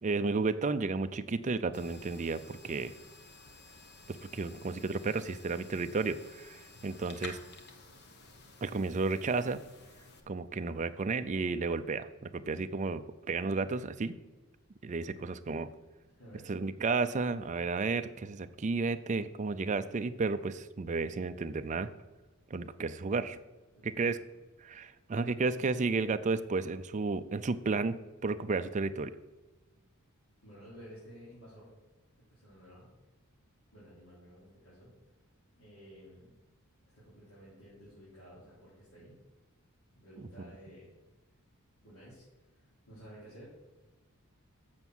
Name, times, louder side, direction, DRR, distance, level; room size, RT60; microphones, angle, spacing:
voice 1, 0.0-2.9 4.1-7.4 8.6-9.6 10.3-14.1 14.8-15.7 16.5-21.9 22.5-23.4 23.8-24.2 24.6-28.0 28.2-29.1 40.2-40.3, right 4 dB, 35° right, 11 dB, 0.4 m, -32 dB
sound 1, 1.7-10.2, left 3 dB, 50° left, 1.1 m, -52 dB
voice 2, 16.2-16.5 23.7-24.1 30.4-31.7 32.3-32.9 33.7-34.9 35.5-36.3 36.9-39.1 40.0-40.9 41.8-43.5, equal, 75° left, -10 dB, 3.5 m, -53 dB
7.3 x 6.9 x 6.2 m, 1.2 s
head